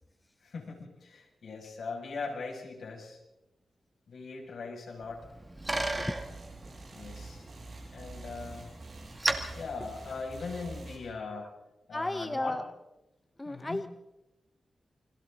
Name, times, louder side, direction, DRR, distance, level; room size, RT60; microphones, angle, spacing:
voice 1, 0.4-3.2 4.1-5.2 6.9-7.5 7.9-8.7 9.5-11.5 11.9-12.6 13.4-13.8, left 4 dB, 65° left, -1 dB, 6.7 m, -40 dB
Bicycle, 5.0-10.7, right 2 dB, 15° right, 2.0 m, -37 dB
sound 1, 5.6-11.0, right 2 dB, 50° right, 6.9 m, -47 dB
voice 2, 11.9-12.6 13.4-13.9, left 1 dB, 15° left, 9 dB, 0.6 m, -33 dB
29.0 x 23.5 x 4.0 m, 0.96 s
wide cardioid pair, 165°, 0 cm